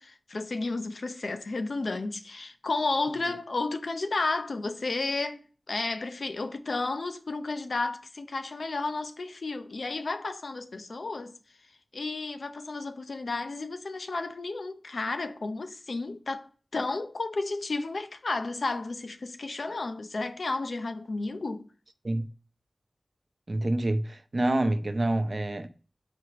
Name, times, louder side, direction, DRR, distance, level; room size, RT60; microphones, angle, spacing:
voice 1, 0.0-11.4 11.9-21.7, left 3 dB, 85° left, 0.6 m, -32 dB
voice 2, 23.5-25.7, right 1 dB, 55° right, 0.7 m, -27 dB
4.7 x 4.2 x 4.8 m
wide cardioid pair, 40°, 0 cm